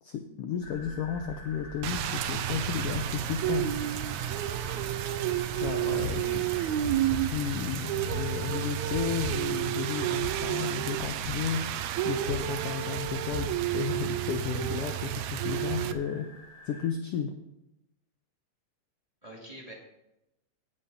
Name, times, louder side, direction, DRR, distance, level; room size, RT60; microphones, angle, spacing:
voice 1, 0.0-3.7 5.6-6.4 7.3-11.6 12.0-16.3 16.7-17.3, left 8 dB, 70° left, 6 dB, 1.5 m, -33 dB
sound 1, 0.6-16.9, left 1 dB, 25° left, 3.8 m, -47 dB
Rain, 1.8-15.9, right 12 dB, 85° right, 2.0 m, -31 dB
voice 2, 5.8-6.9 19.2-19.7, equal, 15° right, -3 dB, 2.1 m, -46 dB
sound 2, 6.0-6.4 6.8-7.5 8.1-8.4 8.9-9.6 10.2-10.5 11.0-11.5 12.3-14.3, left 1 dB, 45° right, 5.8 m, -39 dB
16.5 x 6.9 x 4.1 m, 0.88 s
omnidirectional pair, 3.3 m